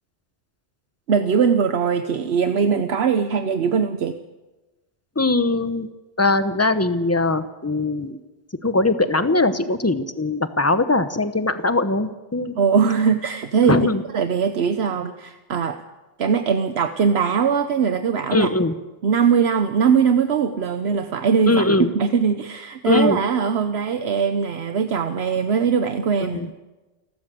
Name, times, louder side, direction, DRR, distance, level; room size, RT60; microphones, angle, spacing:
voice 1, 1.1-4.2 12.6-13.8 14.1-15.8 16.2-18.5 19.0-21.6 21.9-26.5, right 6 dB, 75° right, 9 dB, 1.1 m, -21 dB
voice 2, 5.2-5.9 6.2-8.2 8.6-12.5 13.7-14.0 18.3-18.7 21.5-21.9 22.8-23.2 26.3-26.5, left 2 dB, 15° left, 11 dB, 0.9 m, -20 dB
29.0 x 12.5 x 7.7 m, 1.1 s
omnidirectional pair, 1.1 m